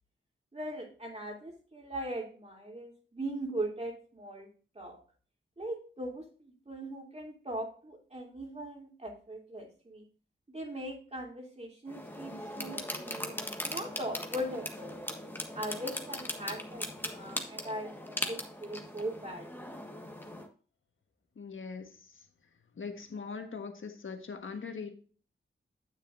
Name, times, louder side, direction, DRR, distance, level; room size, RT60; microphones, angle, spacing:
voice 1, 0.5-4.5 4.7-5.0 5.6-10.0 10.5-13.3 13.6-15.0 15.5-19.8, right 1 dB, 30° right, 0 dB, 3.0 m, -40 dB
sound 1, 11.9-20.5, left 1 dB, 10° left, 1.4 m, -39 dB
voice 2, 21.4-22.1 22.8-24.9, left 5 dB, 70° left, 6 dB, 1.5 m, -41 dB
9.3 x 7.5 x 2.6 m, 0.40 s
cardioid pair, 60°, 21 cm